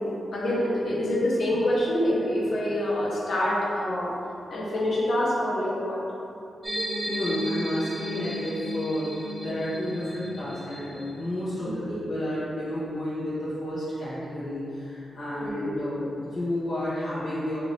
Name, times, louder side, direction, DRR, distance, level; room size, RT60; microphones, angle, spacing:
voice 1, 0.0-4.1 4.5-6.0 11.8-11.9 15.4-15.7, left 1 dB, 80° left, -6 dB, 1.0 m, -26 dB
sound 1, 6.6-11.3, equal, 25° right, 0.8 m, -34 dB
voice 2, 7.1-17.6, left 1 dB, 55° left, -13 dB, 1.1 m, -31 dB
4.7 x 2.5 x 3.2 m, 2.7 s
cardioid pair, 75°, 0 cm